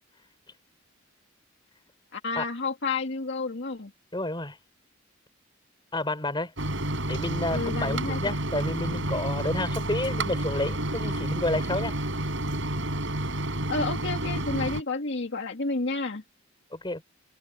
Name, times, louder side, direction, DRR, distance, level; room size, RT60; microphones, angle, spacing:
voice 1, 2.1-3.9 7.5-8.4 13.7-16.2, left 3 dB, 60° left, 2.1 m, -30 dB
voice 2, 4.1-4.6 5.9-6.5 7.1-12.0 16.7-17.0, left 2 dB, 25° left, 4.0 m, -30 dB
Microwave oven, 6.6-14.8, right 1 dB, 65° right, 5.6 m, -30 dB
head